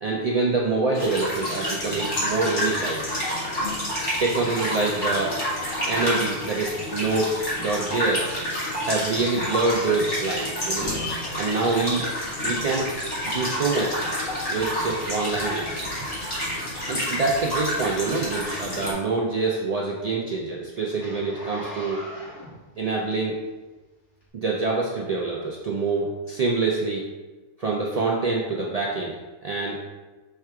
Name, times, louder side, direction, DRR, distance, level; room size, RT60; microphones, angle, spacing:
voice 1, 0.0-3.1 4.2-5.4 5.8-8.3 8.8-10.9 11.4-12.1 12.4-12.9 13.2-14.0 14.5-15.8 16.9-22.0 22.8-23.4 24.3-27.0 27.6-29.8, right 3 dB, 85° right, -2 dB, 0.3 m, -26 dB
sound 1, 0.9-18.9, equal, 40° left, 1.7 m, -29 dB
Zipper (clothing), 19.5-23.6 24.2-24.3, left 1 dB, 60° left, 1.7 m, -41 dB
4.4 x 2.4 x 4.5 m, 1.2 s
omnidirectional pair, 1.2 m